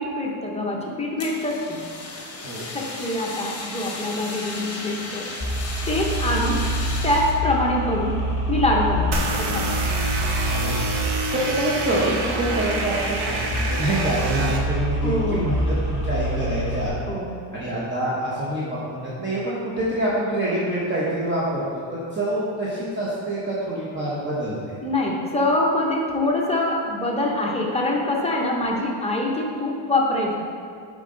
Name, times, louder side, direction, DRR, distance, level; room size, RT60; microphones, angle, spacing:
voice 1, 0.0-1.8 2.7-5.3 5.9-6.7 7.0-8.2 8.5-9.7 15.0-15.5 17.1-17.3 24.8-30.4, left 1 dB, 15° left, -2 dB, 0.8 m, -24 dB
Fire, 1.2-7.4, left 2 dB, 30° left, 1.2 m, -34 dB
sound 1, 5.4-16.9, equal, 5° right, 1.6 m, -27 dB
sound 2, 9.1-14.6, right 2 dB, 55° right, 1.0 m, -27 dB
voice 2, 10.5-11.0 11.3-17.0 17.5-24.7, right 1 dB, 25° right, -8 dB, 1.0 m, -26 dB
7.1 x 5.2 x 3.8 m, 2.3 s
cardioid pair, 150°, 47 cm